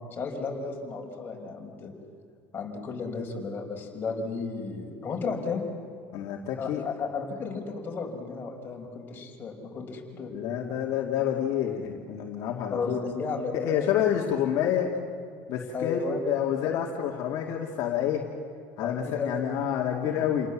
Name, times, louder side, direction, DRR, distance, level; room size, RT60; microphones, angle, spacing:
voice 1, 0.1-1.9 2.5-5.6 6.6-10.3 12.7-14.1 14.6-14.7 15.7-16.3 18.8-19.6 20.2-20.3, left 4 dB, 30° left, 0 dB, 5.2 m, -34 dB
voice 2, 6.1-6.8 10.3-13.0 13.5-14.9 15.5-18.3 18.8-20.5, left 9 dB, 60° left, 0 dB, 2.4 m, -28 dB
29.5 x 19.0 x 7.5 m, 2.2 s
cardioid pair, 125°, 7 cm